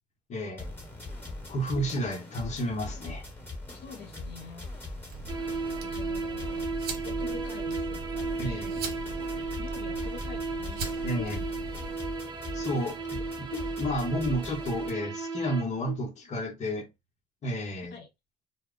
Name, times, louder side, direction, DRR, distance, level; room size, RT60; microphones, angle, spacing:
voice 1, 0.3-0.7 1.5-3.2 8.4-8.8 11.0-11.5 12.5-16.9 17.4-17.9, equal, 45° left, 0.9 m, -31 dB
sound 1, 0.6-14.9, left 2 dB, 15° left, 1.2 m, -41 dB
voice 2, 3.8-4.7 5.8-6.7 7.0-8.8 9.3-11.6 12.8-12.9 17.9-18.1, left 6 dB, 85° left, 0.7 m, -47 dB
sound 2, 5.1-11.9, right 4 dB, 70° right, 1.0 m, -41 dB
sound 3, 5.3-15.6, right 4 dB, 25° right, 0.6 m, -35 dB
2.2 x 2.0 x 3.6 m
cardioid pair, 110°, 17 cm